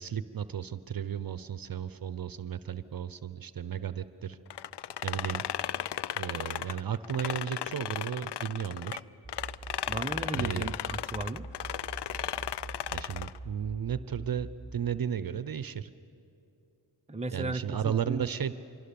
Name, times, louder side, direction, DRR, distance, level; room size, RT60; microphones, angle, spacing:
voice 1, 0.0-4.4 5.0-5.4 6.1-9.0 10.3-10.7 12.9-15.9 17.3-18.5, right 8 dB, 50° right, 14 dB, 0.7 m, -34 dB
sound 1, 4.5-9.0 9.3-13.4, left 11 dB, 60° left, 0.6 m, -35 dB
sound 2, 9.2-14.7, right 2 dB, 5° left, 1.2 m, -44 dB
voice 2, 9.9-11.5 17.1-18.3, right 2 dB, 15° right, 7 dB, 0.8 m, -35 dB
25.5 x 23.0 x 7.0 m, 2.8 s
cardioid pair, 75°, 48 cm